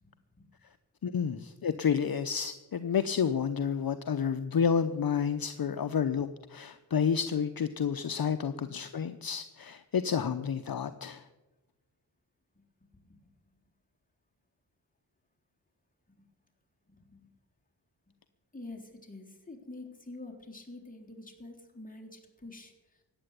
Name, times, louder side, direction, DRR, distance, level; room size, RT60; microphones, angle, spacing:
voice 1, 1.0-11.3, left 7 dB, 55° left, 10 dB, 0.8 m, -30 dB
voice 2, 16.9-17.3 18.5-22.7, left 2 dB, 20° left, 0 dB, 3.8 m, -47 dB
16.0 x 9.8 x 8.2 m, 1.1 s
cardioid pair, 60°, 44 cm